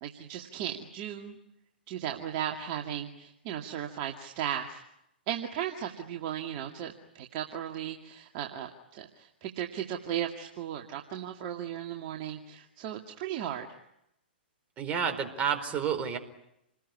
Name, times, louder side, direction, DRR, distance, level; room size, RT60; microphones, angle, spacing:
voice 1, 0.0-1.4 1.9-4.8 5.3-13.7, right 10 dB, 40° right, 2 dB, 2.2 m, -36 dB
voice 2, 14.8-16.2, right 7 dB, 25° right, 6 dB, 4.5 m, -30 dB
29.0 x 20.0 x 9.8 m, 0.84 s
hypercardioid pair, 120°, 6 cm